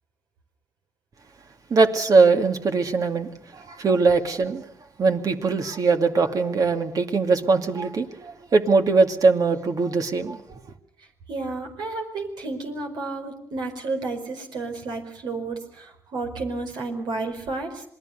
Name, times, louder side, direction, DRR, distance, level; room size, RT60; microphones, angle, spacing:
voice 1, 1.7-4.6 5.0-10.6, right 4 dB, 55° right, 2.4 m, -21 dB
voice 2, 11.3-17.8, right 3 dB, 75° right, 4.8 m, -31 dB
27.0 x 20.0 x 6.7 m
supercardioid pair, 55°, 7 cm